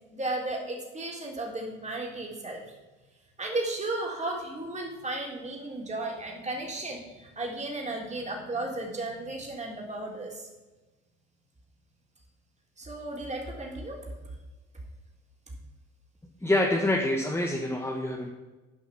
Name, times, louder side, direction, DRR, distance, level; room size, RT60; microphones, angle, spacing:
voice 1, 0.1-2.6 3.4-10.5 12.8-14.0, right 2 dB, 20° right, -1 dB, 3.5 m, -34 dB
voice 2, 16.4-18.3, left 1 dB, 5° left, 0 dB, 1.6 m, -26 dB
11.0 x 5.6 x 6.0 m, 1.2 s
supercardioid pair, 85°, 33 cm